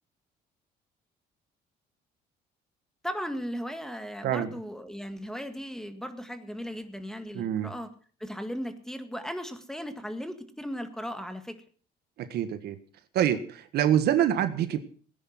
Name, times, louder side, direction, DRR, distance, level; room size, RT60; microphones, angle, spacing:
voice 1, 3.0-7.9 8.2-11.6, equal, 5° left, 8 dB, 1.9 m, -37 dB
voice 2, 7.3-7.7 12.2-12.8 13.1-14.8, right 10 dB, 70° right, 10 dB, 1.6 m, -26 dB
18.0 x 10.5 x 6.0 m, 0.44 s
cardioid pair, 110°, 17 cm